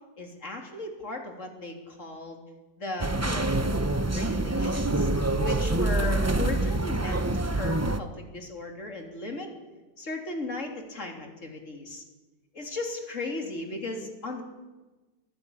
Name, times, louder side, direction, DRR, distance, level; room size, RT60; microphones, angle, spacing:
voice 1, 0.2-2.4 2.8-3.8 4.1-5.1 5.4-9.5 10.0-12.0 12.5-14.4, left 2 dB, 45° left, 3 dB, 3.5 m, -36 dB
sound 1, 3.0-8.0, right 2 dB, 15° right, 0.5 m, -26 dB
23.0 x 15.5 x 8.6 m, 1.2 s
omnidirectional pair, 1.8 m